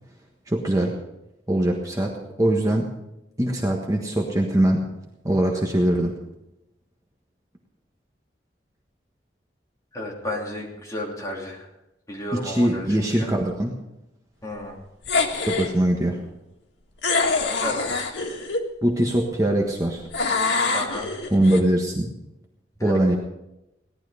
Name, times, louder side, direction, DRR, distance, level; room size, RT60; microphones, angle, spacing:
voice 1, 0.5-1.0 1.5-2.9 3.4-4.8 5.2-6.2 12.4-13.7 15.5-16.2 18.8-20.1 21.3-22.1 22.8-23.2, right 1 dB, 20° right, 0 dB, 1.4 m, -22 dB
voice 2, 9.9-11.7 12.1-13.3 14.4-14.8 17.6-18.2 20.7-21.1 22.8-22.9, left 1 dB, 20° left, -3 dB, 3.1 m, -32 dB
sound 1, 15.0-15.7 17.0-18.7 20.1-21.6, left 3 dB, 85° left, 1.7 m, -24 dB
18.0 x 11.5 x 5.0 m, 0.93 s
head